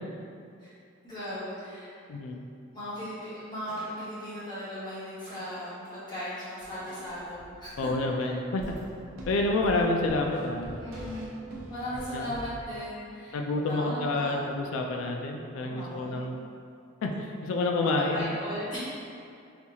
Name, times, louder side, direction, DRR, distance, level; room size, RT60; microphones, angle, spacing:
voice 1, 1.0-1.9 2.7-7.9 8.1-8.3 10.8-11.4 11.7-14.4 15.6-16.2 18.1-18.8, equal, 20° left, -13 dB, 1.2 m, -37 dB
voice 2, 2.1-2.4 7.8-8.6 9.3-10.7 12.1-12.4 13.3-16.4 17.0-18.3, left 2 dB, 80° left, 2 dB, 0.3 m, -28 dB
sound 1, 3.7-4.5 5.2-6.2 6.7-7.4 8.2-9.1 9.8-9.9 10.3-11.1 11.8-12.5, right 1 dB, 50° right, 1.5 m, -50 dB
sound 2, 6.6-6.7 7.1-8.1 8.6-12.6, equal, 85° right, 0.6 m, -43 dB
4.2 x 2.3 x 2.8 m, 2.5 s
head